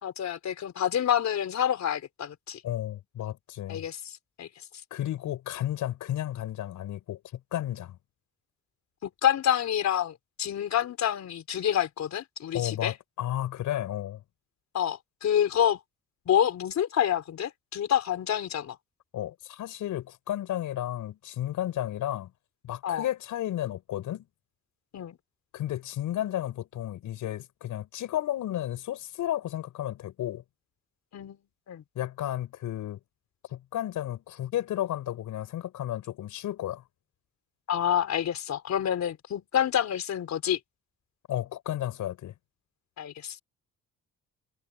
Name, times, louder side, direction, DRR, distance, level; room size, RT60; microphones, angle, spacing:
voice 1, 0.0-2.6 3.7-4.1 4.4-4.5 9.0-12.9 14.7-15.8 16.3-18.8 22.8-23.1 24.9-25.2 31.1-31.4 31.7-31.8 37.7-40.6 43.0-43.4, left 10 dB, 65° left, 4.0 m, -27 dB
voice 2, 2.6-3.8 4.9-8.0 12.5-14.2 19.1-22.3 22.6-24.3 25.5-30.4 31.9-33.0 33.5-36.8 41.3-42.3, left 12 dB, 80° left, 6.3 m, -33 dB
cardioid pair, 90°, 30 cm